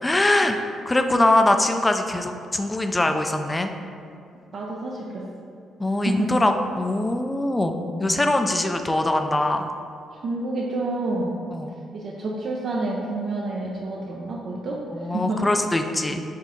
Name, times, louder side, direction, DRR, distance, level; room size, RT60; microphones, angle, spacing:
voice 1, 0.0-0.6 0.9-3.7 5.8-9.7 11.5-11.8 14.9-16.2, left 1 dB, 15° left, 6 dB, 0.3 m, -22 dB
voice 2, 4.5-5.3 6.0-6.4 7.8-8.1 10.2-11.4 11.9-15.5, right 2 dB, 55° right, -3 dB, 0.5 m, -29 dB
5.0 x 2.7 x 3.8 m, 2.4 s
cardioid pair, 90°, 0 cm